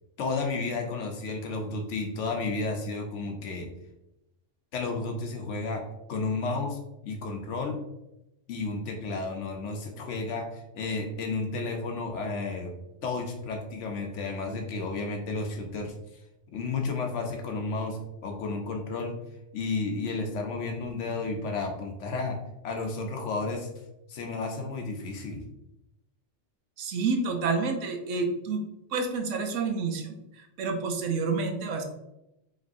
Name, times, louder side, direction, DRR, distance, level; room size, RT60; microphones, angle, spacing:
voice 1, 0.2-3.7 4.7-5.8 6.1-7.8 8.5-12.7 13.0-15.9 16.5-19.2 19.5-22.4 22.6-23.7 24.1-25.4, left 3 dB, 80° left, 3 dB, 1.0 m, -32 dB
voice 2, 26.8-28.7 28.9-31.8, right 4 dB, 85° right, 4 dB, 1.0 m, -29 dB
5.0 x 3.1 x 2.6 m, 0.89 s
omnidirectional pair, 1.2 m